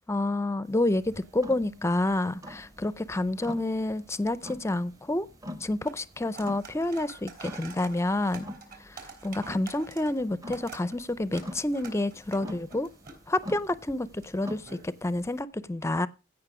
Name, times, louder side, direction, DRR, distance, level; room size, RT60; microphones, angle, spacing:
voice 1, 0.1-5.3 5.6-8.5 8.9-12.9 13.3-16.1, left 2 dB, 15° left, 0.5 m, -29 dB
sound 1, 0.6-15.4, left 1 dB, 15° right, 0.8 m, -46 dB
sound 2, 0.8-15.3, right 4 dB, 45° right, 3.2 m, -50 dB
16.0 x 5.8 x 4.8 m
head